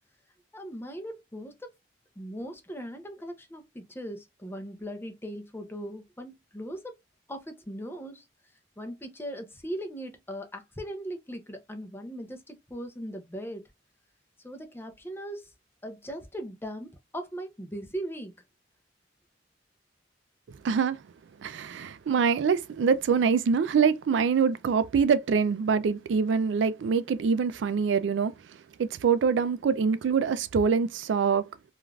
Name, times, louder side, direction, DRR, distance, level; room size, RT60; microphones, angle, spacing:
voice 1, 0.5-1.8 2.2-7.0 7.3-8.2 8.8-13.7 14.4-15.5 15.8-18.3, equal, 10° left, 0.5 m, -39 dB
voice 2, 20.6-21.0 21.4-28.3 28.8-31.4, right 6 dB, 80° right, 0.4 m, -24 dB
3.2 x 2.4 x 2.3 m
head